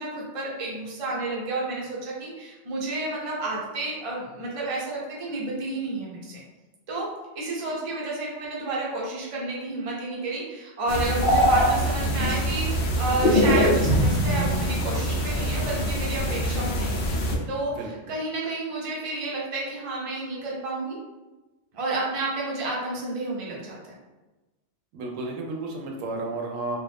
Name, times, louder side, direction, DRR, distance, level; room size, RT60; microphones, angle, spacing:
voice 1, 0.0-6.4 6.9-7.1 7.3-17.2 17.5-21.0 21.7-23.9, right 2 dB, 35° right, -4 dB, 0.6 m, -31 dB
sound 1, 10.9-17.4, equal, 60° left, 0.5 m, -23 dB
voice 2, 24.9-26.8, right 2 dB, 80° right, 0 dB, 1.0 m, -32 dB
2.5 x 2.3 x 3.3 m, 1.1 s
omnidirectional pair, 1.3 m